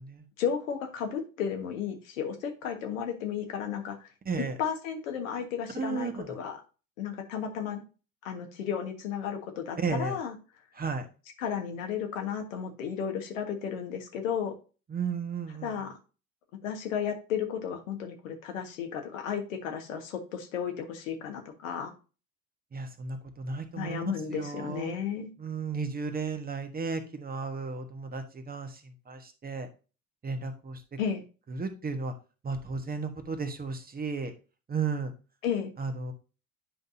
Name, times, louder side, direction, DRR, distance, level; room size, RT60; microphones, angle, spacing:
voice 1, 0.4-4.1 4.6-6.6 7.0-7.8 8.2-10.4 11.4-14.5 15.6-16.0 16.6-21.9 23.7-25.3 31.0-31.2 35.4-35.7, left 8 dB, 70° left, 4 dB, 1.6 m, -33 dB
voice 2, 4.2-4.5 5.7-6.3 9.8-10.2 10.8-11.1 14.9-15.8 22.7-24.9 25.4-28.8 29.1-29.7 30.2-30.8 31.5-32.1 32.4-34.3 34.7-35.1 35.8-36.1, right 4 dB, 20° right, 6 dB, 1.3 m, -34 dB
10.0 x 5.3 x 2.7 m, 0.33 s
figure-of-eight pair, 70°, 42 cm